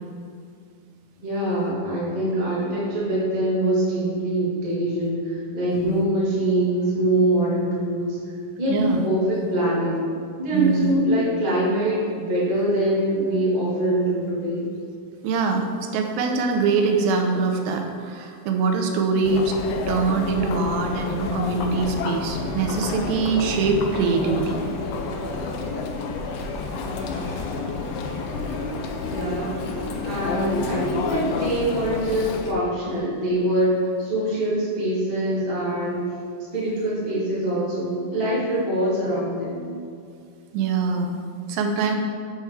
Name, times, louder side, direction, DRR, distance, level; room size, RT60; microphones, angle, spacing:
voice 1, 1.2-8.2 8.6-10.0 10.4-14.6 29.0-29.6 30.0-36.0 36.4-39.6, right 1 dB, 45° right, -8 dB, 0.5 m, -24 dB
voice 2, 8.7-9.1 10.5-10.9 15.2-15.7 15.9-19.6 19.9-24.6 40.5-41.2 41.5-42.0, right 4 dB, 90° right, 3 dB, 2.4 m, -23 dB
Chatter, 19.2-32.5, left 4 dB, 80° left, 2.3 m, -29 dB
sound 1, 20.2-30.9, right 2 dB, 65° right, 2.1 m, -41 dB
7.1 x 4.5 x 4.6 m, 2.2 s
omnidirectional pair, 4.2 m